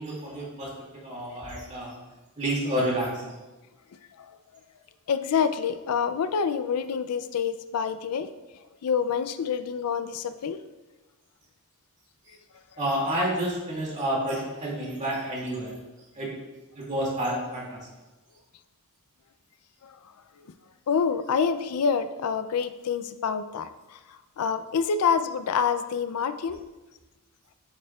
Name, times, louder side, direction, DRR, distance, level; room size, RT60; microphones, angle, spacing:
voice 1, 0.0-1.9 2.4-3.3 12.8-15.8 16.1-16.3 16.7-17.8, right 1 dB, 35° right, -4 dB, 2.2 m, -29 dB
voice 2, 5.1-8.3 8.8-10.6 19.8-20.0 20.9-26.6, left 6 dB, 85° left, 12 dB, 0.4 m, -27 dB
8.6 x 7.4 x 2.3 m, 1.1 s
head